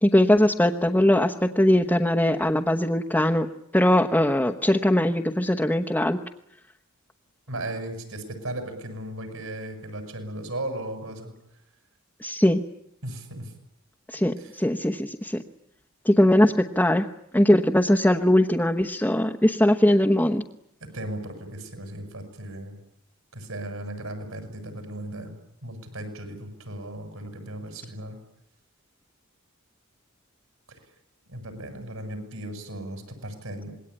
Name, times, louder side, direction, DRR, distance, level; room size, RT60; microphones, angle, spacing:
voice 1, 0.0-3.5 3.7-6.2 12.2-12.6 14.1-15.4 16.0-17.0 17.3-20.4, left 1 dB, 10° left, 3 dB, 1.1 m, -20 dB
voice 2, 7.5-11.3 13.0-13.5 14.4-14.5 20.8-22.8 23.3-25.3 25.6-28.2 31.3-33.7, right 1 dB, 75° right, 7 dB, 7.9 m, -36 dB
27.0 x 21.5 x 10.0 m, 0.74 s
head